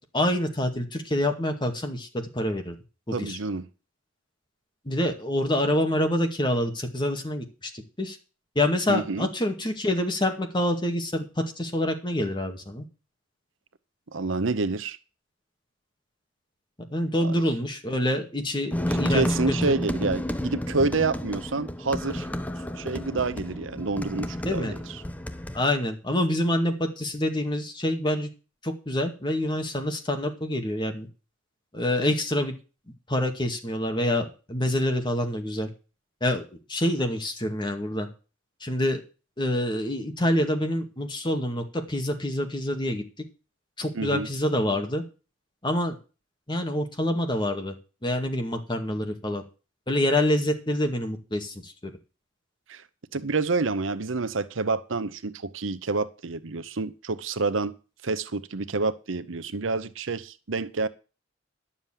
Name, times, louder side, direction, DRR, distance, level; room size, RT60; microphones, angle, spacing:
voice 1, 0.1-2.8 3.1-3.4 4.9-8.2 8.6-11.3 11.6-12.8 16.9-19.8 24.4-24.7 25.5-28.3 28.6-31.1 31.7-32.5 33.1-35.7 36.2-36.4 36.7-38.1 38.6-39.0 39.4-43.0 43.8-45.0 45.6-46.0 46.5-47.8 48.0-49.4 49.9-51.9, left 1 dB, 25° left, 2.2 m, -26 dB
voice 2, 3.1-3.7 8.9-9.3 14.1-15.0 17.2-17.4 19.1-22.3 22.8-25.0 43.9-44.3 52.7-52.8 53.1-57.7 58.0-60.9, right 3 dB, 70° right, 0.8 m, -28 dB
sound 1, 18.7-25.6, left 1 dB, 10° left, 0.8 m, -31 dB
11.5 x 7.3 x 7.4 m
head